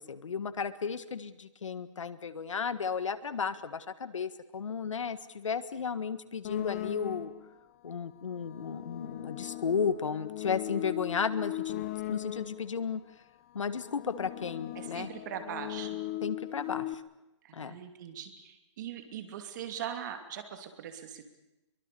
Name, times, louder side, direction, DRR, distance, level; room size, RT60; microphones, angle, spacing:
voice 1, 0.0-7.3 7.8-13.0 13.5-15.1 16.2-17.0 17.5-17.8, left 6 dB, 90° left, 13 dB, 1.6 m, -34 dB
sound 1, 6.4-7.5 8.3-12.8 13.5-16.9, left 15 dB, 30° left, 0.9 m, -39 dB
voice 2, 14.7-16.0 17.4-21.2, right 9 dB, 40° right, 7 dB, 2.8 m, -41 dB
23.0 x 23.0 x 7.0 m, 0.97 s
hypercardioid pair, 160°, 16 cm